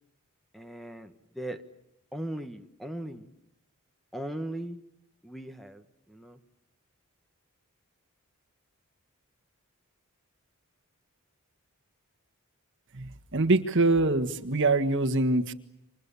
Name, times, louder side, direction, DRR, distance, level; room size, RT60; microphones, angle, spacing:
voice 1, 0.5-1.6 2.1-3.3 4.1-4.8 5.2-6.4, right 1 dB, ahead, 8 dB, 1.3 m, -38 dB
voice 2, 13.3-15.5, right 2 dB, 55° right, 9 dB, 1.6 m, -24 dB
29.5 x 26.0 x 7.0 m, 0.80 s
head